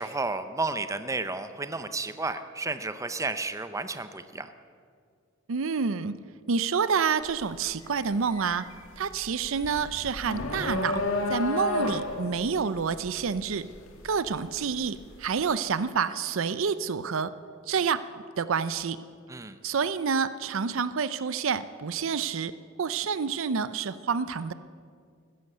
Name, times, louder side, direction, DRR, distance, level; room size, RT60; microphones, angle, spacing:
voice 1, 0.0-4.5 19.3-19.6, right 3 dB, 15° right, 10 dB, 0.7 m, -32 dB
voice 2, 5.5-6.1 6.5-8.6 9.0-11.0 11.3-13.7 14.0-17.3 17.7-18.0 18.4-19.0 19.6-22.5 22.8-24.5, right 6 dB, 70° right, 15 dB, 0.5 m, -28 dB
sound 1, 7.2-7.5 7.8-14.8, left 2 dB, 70° left, 2.2 m, -32 dB
15.0 x 14.5 x 6.7 m, 2.1 s
head